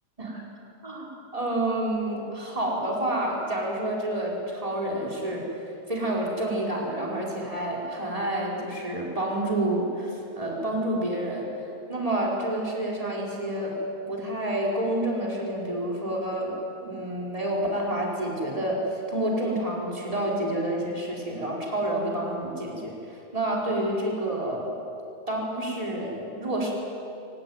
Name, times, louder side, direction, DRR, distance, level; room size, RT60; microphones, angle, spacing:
voice 1, 0.8-5.5 5.9-11.5 11.9-13.8 14.1-16.5 16.8-24.7 25.3-26.7, right 1 dB, 10° right, -3 dB, 4.7 m, -29 dB
23.5 x 20.0 x 9.6 m, 2.7 s
omnidirectional pair, 4.0 m